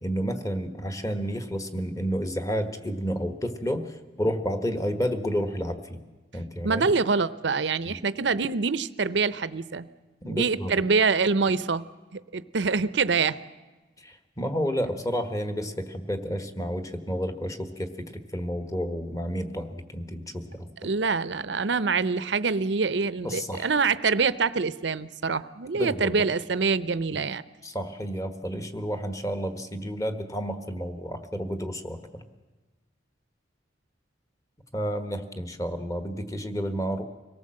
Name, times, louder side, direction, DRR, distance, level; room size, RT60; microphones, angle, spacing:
voice 1, 0.0-3.9 4.2-6.0 6.3-6.9 7.9-8.0 10.2-10.7 14.0-20.7 23.2-23.7 25.7-26.1 27.6-32.2 34.7-37.0, equal, 15° left, 8 dB, 1.4 m, -31 dB
voice 2, 6.6-9.9 10.2-11.9 12.1-13.4 20.8-27.4, right 4 dB, 65° right, 15 dB, 0.7 m, -25 dB
25.5 x 18.0 x 7.7 m, 1.2 s
head